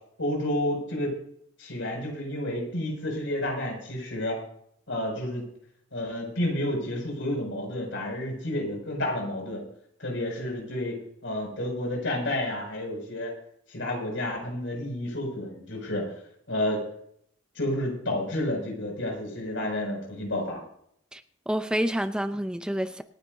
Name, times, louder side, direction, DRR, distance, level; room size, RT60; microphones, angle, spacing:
voice 1, 0.2-1.1 1.6-4.4 4.9-5.4 5.9-9.6 10.0-11.0 11.2-13.3 13.7-16.1 16.5-16.8 17.5-20.6, left 1 dB, 80° left, 6.4 m, -30 dB
voice 2, 21.1-23.0, equal, 5° right, 0.6 m, -29 dB
27.0 x 10.5 x 2.7 m
head